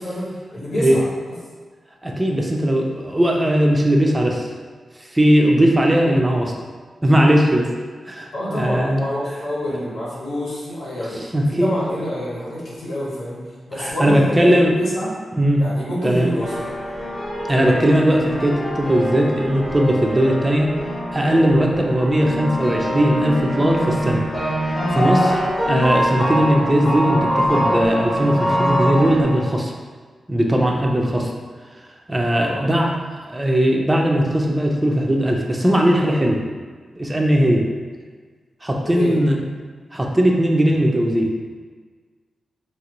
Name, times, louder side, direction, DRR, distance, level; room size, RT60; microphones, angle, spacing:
voice 1, 0.0-1.3 8.3-13.4 13.7-15.1 15.6-16.5 32.3-32.7 38.8-39.2, equal, 85° left, -7 dB, 1.1 m, -27 dB
voice 2, 2.0-4.4 5.1-6.5 7.0-7.7 8.1-9.0 11.1-11.8 13.8-14.7 15.4-15.6 16.0-16.3 17.5-20.7 21.1-24.2 24.6-25.4 25.7-29.7 30.3-31.3 32.1-32.9 33.3-36.4 37.0-37.7 38.6-39.4 39.9-41.3, equal, 15° right, 0 dB, 0.3 m, -18 dB
sound 1, 16.4-29.2, equal, 20° left, 0.7 m, -23 dB
3.2 x 2.5 x 2.9 m, 1.5 s
wide cardioid pair, 170°, 0 cm